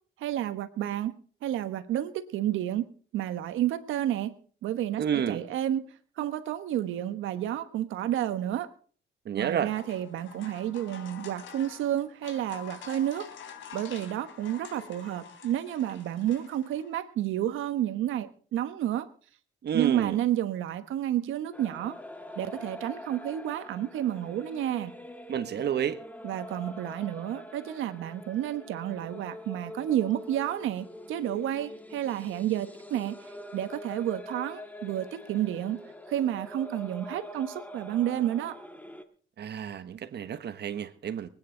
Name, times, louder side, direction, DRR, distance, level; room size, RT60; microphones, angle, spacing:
voice 1, 0.2-2.9 3.1-4.4 4.6-5.9 6.2-8.7 9.3-13.3 13.7-19.1 19.7-22.0 22.4-24.9 26.2-35.8 36.1-38.6, right 12 dB, 85° right, 1.3 m, -30 dB
voice 2, 5.0-5.4 9.2-9.7 19.6-20.2 25.3-26.0 39.4-41.3, right 8 dB, 60° right, 1.2 m, -30 dB
sound 1, 9.4-17.0, left 7 dB, 80° left, 3.3 m, -47 dB
sound 2, 21.5-39.0, left 1 dB, 10° left, 1.8 m, -44 dB
24.5 x 9.5 x 3.9 m
cardioid pair, 90°, 20 cm